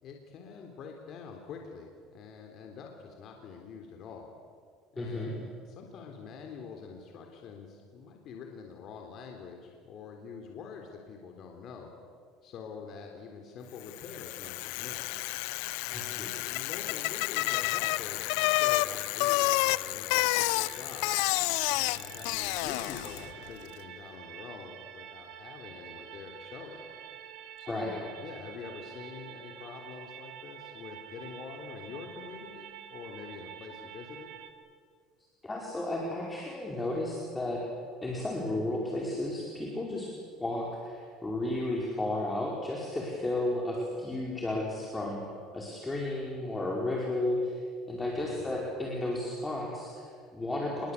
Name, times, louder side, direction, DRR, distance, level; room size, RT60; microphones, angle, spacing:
voice 1, 0.0-4.3 4.9-11.9 12.4-15.1 15.9-21.3 21.7-26.9 27.6-34.3 48.1-48.6, left 5 dB, 50° left, 2 dB, 3.7 m, -45 dB
voice 2, 5.0-5.3 15.9-16.3 27.7-28.0 35.4-37.6 38.0-40.1 40.4-45.2 45.5-47.6 47.9-50.9, left 1 dB, 15° left, -2 dB, 4.9 m, -33 dB
Bicycle, 13.9-23.3, left 20 dB, 80° left, 0.6 m, -30 dB
sound 1, 20.2-34.5, right 10 dB, 65° right, 2.3 m, -48 dB
27.0 x 22.5 x 8.5 m, 2.1 s
cardioid pair, 115°, 0 cm